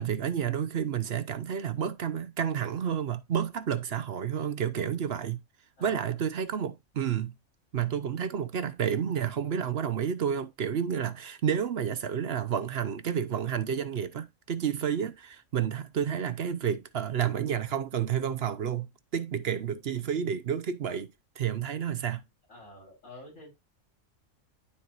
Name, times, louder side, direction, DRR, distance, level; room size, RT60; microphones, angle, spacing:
voice 1, 0.0-5.4 5.8-7.4 7.7-21.1 21.4-22.2, right 8 dB, 60° right, 0.9 m, -30 dB
voice 2, 5.8-6.1 22.5-23.5, left 2 dB, 80° left, 5.3 m, -49 dB
12.0 x 4.6 x 2.5 m
omnidirectional pair, 1.3 m